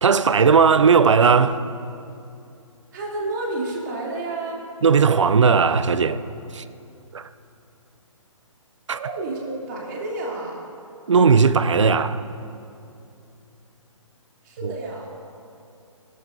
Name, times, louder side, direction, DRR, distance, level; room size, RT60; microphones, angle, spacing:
voice 1, 0.0-1.6 4.8-6.2 6.5-6.6 7.1-7.3 8.9-9.0 11.1-12.2 14.6-14.7, right 5 dB, 65° right, 0.6 m, -17 dB
voice 2, 2.9-4.6 8.9-10.6 14.4-15.1, right 2 dB, 35° right, 2.9 m, -30 dB
24.0 x 12.0 x 2.7 m
figure-of-eight pair, 135°, 17 cm